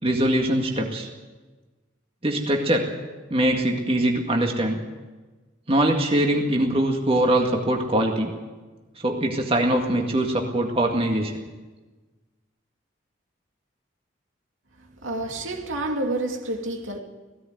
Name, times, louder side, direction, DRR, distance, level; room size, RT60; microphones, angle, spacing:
voice 1, 0.0-1.1 2.2-2.9 3.3-4.8 5.7-8.3 9.0-11.3, right 1 dB, 30° right, 2 dB, 2.0 m, -22 dB
voice 2, 15.0-17.0, right 2 dB, 75° right, 3 dB, 2.6 m, -28 dB
18.0 x 16.5 x 9.3 m, 1.3 s
head